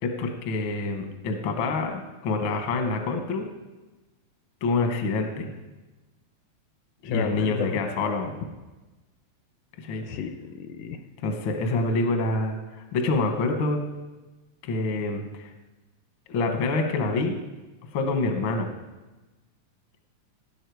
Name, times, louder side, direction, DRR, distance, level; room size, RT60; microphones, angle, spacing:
voice 1, 0.0-3.4 4.6-5.5 7.0-8.3 9.8-10.0 11.2-13.8 14.6-15.5 16.3-17.4 17.9-18.7, left 3 dB, 60° left, 4 dB, 1.3 m, -26 dB
voice 2, 7.0-7.8 10.1-11.0, left 7 dB, 80° left, 7 dB, 2.1 m, -31 dB
17.5 x 7.4 x 4.8 m, 1.1 s
omnidirectional pair, 4.2 m